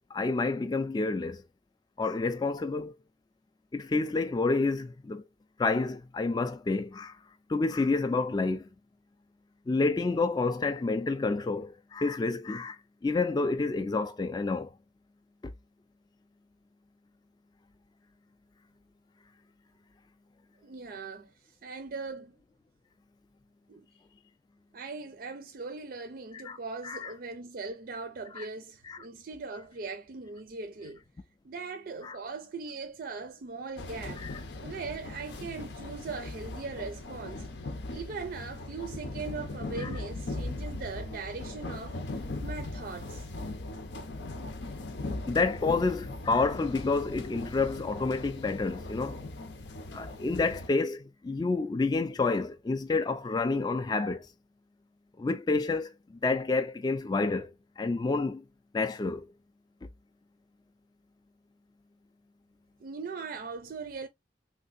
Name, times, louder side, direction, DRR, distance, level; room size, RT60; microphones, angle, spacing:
voice 1, 0.1-1.4 2.0-2.9 3.7-5.2 5.6-7.2 7.5-8.7 9.7-14.7 26.3-26.6 26.8-27.1 28.4-28.5 28.9-29.0 32.0-32.2 34.2-34.4 39.8-39.9 45.3-49.2 49.9-54.3 55.2-58.4 58.7-59.3, left 3 dB, 25° left, 0.3 m, -29 dB
voice 2, 20.6-21.3 21.6-22.4 23.7-23.9 24.7-31.0 31.4-34.2 34.6-37.5 37.9-43.3 62.8-64.1, right 4 dB, 55° right, 0.4 m, -40 dB
sound 1, 33.8-50.7, left 2 dB, 80° left, 0.7 m, -39 dB
3.4 x 2.7 x 2.5 m
head